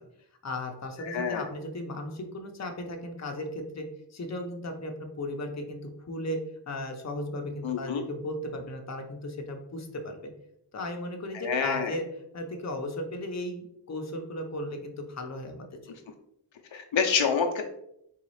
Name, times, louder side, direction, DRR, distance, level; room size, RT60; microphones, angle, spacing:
voice 1, 0.4-5.8 6.1-6.4 6.7-10.3 10.7-12.1 12.3-15.7, left 1 dB, 35° left, 4 dB, 0.6 m, -36 dB
voice 2, 1.0-1.4 7.6-8.0 11.4-12.0 16.7-17.6, left 6 dB, 80° left, 4 dB, 0.5 m, -27 dB
3.9 x 2.4 x 3.1 m, 0.75 s
wide cardioid pair, 60°, 45 cm